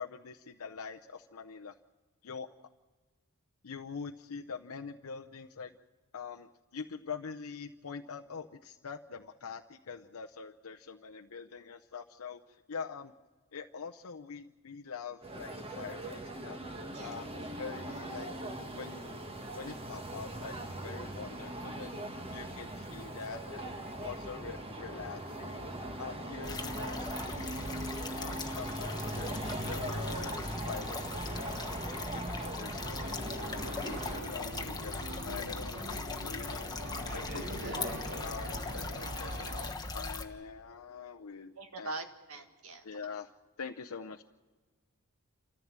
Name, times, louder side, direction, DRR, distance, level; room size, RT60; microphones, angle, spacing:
voice 1, 0.0-1.8 2.2-2.5 3.6-5.7 6.1-13.1 13.5-16.6 17.0-18.3 18.7-19.2 19.5-21.9 22.3-23.7 24.0-27.6 28.2-29.3 29.7-30.4 30.6-33.1 33.6-35.7 36.2-36.7 37.1-37.5 38.2-41.9 42.8-44.2, left 5 dB, 75° left, 3 dB, 0.7 m, -44 dB
sound 1, 15.2-34.2, right 1 dB, 25° right, 1.4 m, -40 dB
sound 2, 26.4-40.2, left 3 dB, 20° left, 1.1 m, -40 dB
sound 3, 32.8-39.7, right 1 dB, 55° right, 3.5 m, -42 dB
voice 2, 41.6-42.8, right 2 dB, 75° right, 6 dB, 1.8 m, -42 dB
28.0 x 14.0 x 7.4 m, 1.3 s
head